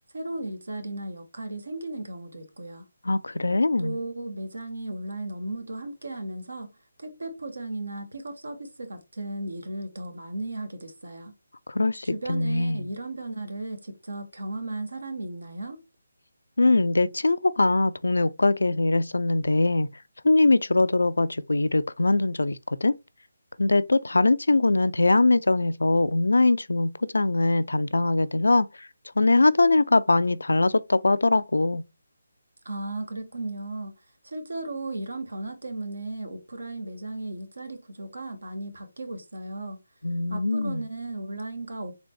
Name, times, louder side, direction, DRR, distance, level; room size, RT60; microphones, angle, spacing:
voice 1, 0.1-2.8 3.8-6.7 7.0-11.3 12.1-15.8 32.6-33.9 34.2-39.8 40.3-41.9, right 2 dB, 75° right, 1.3 m, -35 dB
voice 2, 3.0-4.0 11.7-12.9 16.6-19.9 20.2-22.9 23.6-28.9 29.2-31.8 40.0-40.8, left 2 dB, 75° left, 0.4 m, -22 dB
4.0 x 3.3 x 3.1 m
figure-of-eight pair, 155°, 0 cm